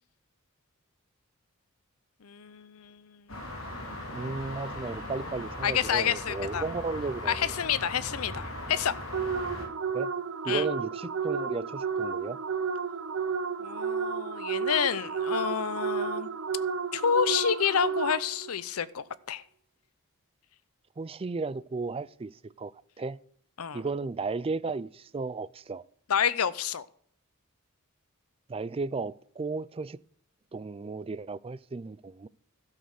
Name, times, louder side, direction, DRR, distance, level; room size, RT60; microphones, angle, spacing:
voice 1, 2.2-3.2 5.6-6.6 7.3-8.9 10.5-10.6 13.6-16.3 16.9-19.4 23.6-23.8 26.1-26.8, left 8 dB, 90° left, 0.7 m, -29 dB
sound 1, 3.3-9.7, left 1 dB, 65° left, 3.2 m, -39 dB
voice 2, 4.1-7.5 9.9-10.1 10.4-12.4 21.0-22.7 23.0-23.2 23.7-25.8 28.5-30.0 30.5-32.3, right 3 dB, 25° right, 0.4 m, -34 dB
sound 2, 9.1-18.5, right 6 dB, 65° right, 0.9 m, -32 dB
12.5 x 6.5 x 6.6 m
head